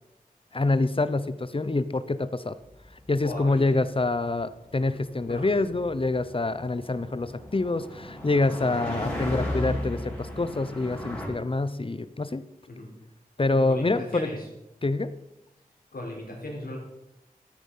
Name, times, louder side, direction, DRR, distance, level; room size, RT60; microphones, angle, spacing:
voice 1, 0.5-2.6 3.1-12.4 13.4-14.3 14.8-15.1, left 2 dB, 35° left, 14 dB, 0.8 m, -26 dB
sound 1, 2.8-11.3, left 1 dB, 10° left, 6.4 m, -36 dB
voice 2, 3.2-3.7 4.9-5.0 5.2-5.7 12.7-12.9 13.5-14.4 15.9-16.8, left 1 dB, 75° left, -1 dB, 4.5 m, -37 dB
13.5 x 9.6 x 5.6 m, 0.93 s
wide cardioid pair, 65°, 16 cm